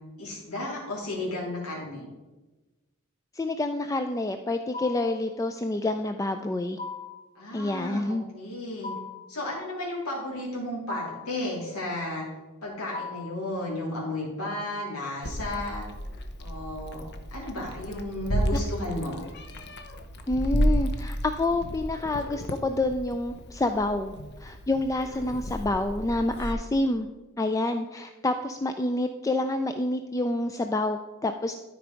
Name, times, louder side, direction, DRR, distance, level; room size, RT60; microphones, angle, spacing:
voice 1, 0.2-2.0 7.3-8.9 9.3-12.3 12.6-15.8 16.4-17.1 17.3-19.2, left 1 dB, 90° left, -5 dB, 2.6 m, -33 dB
voice 2, 3.3-6.8 7.5-8.2 20.3-27.1 27.4-31.5, left 2 dB, 15° left, 7 dB, 0.3 m, -28 dB
sound 1, 4.7-5.2 6.8-7.3 8.8-9.3 10.9-11.4 12.9-13.4, left 5 dB, 30° left, 1.7 m, -37 dB
Meow, 15.2-26.5, equal, 50° left, 0.8 m, -32 dB
13.0 x 4.6 x 5.1 m, 1.2 s
head